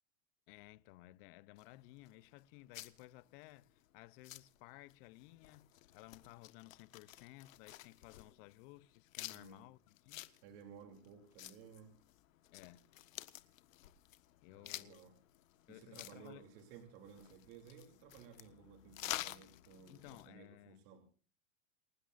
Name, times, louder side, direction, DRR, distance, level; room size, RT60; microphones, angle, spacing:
voice 1, 0.5-10.3 12.5-12.9 14.4-15.1 15.7-16.5 19.9-20.8, left 18 dB, 45° left, 0.8 m, -57 dB
sound 1, 1.6-20.3, left 14 dB, 80° left, 1.5 m, -51 dB
voice 2, 9.3-9.6 10.4-12.0 14.5-15.2 15.7-21.1, right 7 dB, 50° right, 3.2 m, -57 dB
29.0 x 13.0 x 2.6 m
supercardioid pair, 145°, 39 cm